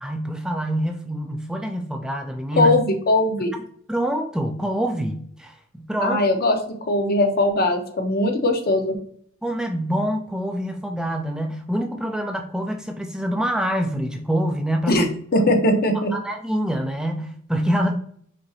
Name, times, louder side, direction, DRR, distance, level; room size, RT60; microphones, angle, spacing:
voice 1, 0.0-2.8 3.9-6.2 9.4-15.1 15.4-15.5 16.1-18.0, equal, 5° right, 3 dB, 0.3 m, -26 dB
voice 2, 2.6-3.5 6.0-8.9 14.9-15.1 15.3-16.1, left 1 dB, 50° left, 5 dB, 0.8 m, -20 dB
5.3 x 2.9 x 2.7 m, 0.62 s
head